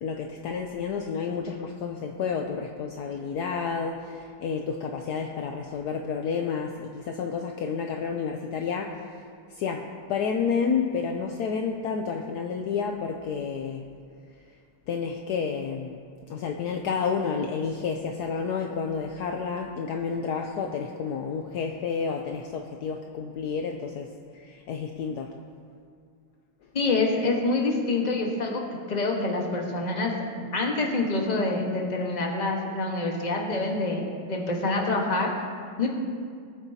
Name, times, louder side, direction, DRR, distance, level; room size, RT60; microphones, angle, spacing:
voice 1, 0.0-13.9 14.5-14.6 14.9-16.0 16.3-25.4, left 6 dB, 70° left, 2 dB, 1.1 m, -30 dB
voice 2, 26.7-30.1 30.5-35.3 35.8-35.9, left 2 dB, 25° left, 0 dB, 1.2 m, -26 dB
19.5 x 8.9 x 2.8 m, 2.2 s
omnidirectional pair, 2.0 m